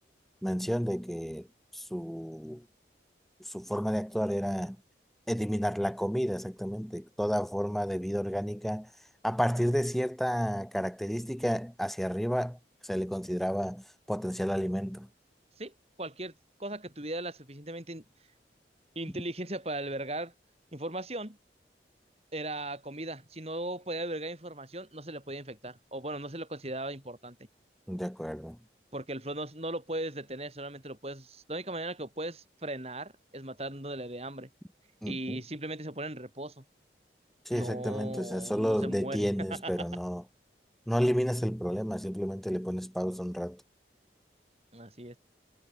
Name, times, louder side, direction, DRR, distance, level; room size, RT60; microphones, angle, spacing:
voice 1, 0.4-1.5 1.7-2.6 3.4-4.8 5.3-8.9 9.2-12.6 12.8-15.1 27.9-28.6 35.0-35.4 37.4-40.2 40.9-43.6, equal, ahead, 6.7 m, -31 dB
voice 2, 16.0-16.3 16.6-18.0 18.9-20.3 20.7-21.4 22.3-27.4 28.9-34.5 35.1-36.6 37.5-39.9 44.7-45.2, right 1 dB, 35° right, 6.8 m, -38 dB
head